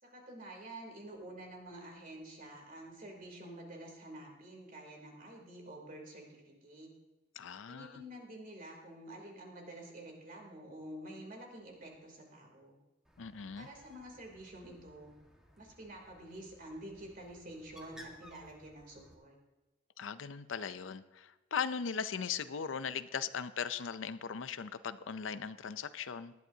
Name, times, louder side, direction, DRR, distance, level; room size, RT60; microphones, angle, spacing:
voice 1, 0.0-6.9 7.7-12.8 13.5-15.1 15.6-19.4, right 1 dB, 45° right, 0 dB, 3.1 m, -49 dB
voice 2, 7.4-8.0 13.2-13.7 20.0-26.3, left 6 dB, 75° left, 13 dB, 0.5 m, -39 dB
Bird, 13.0-19.1, left 1 dB, 5° right, 1.5 m, -59 dB
18.5 x 12.0 x 2.8 m, 1.1 s
head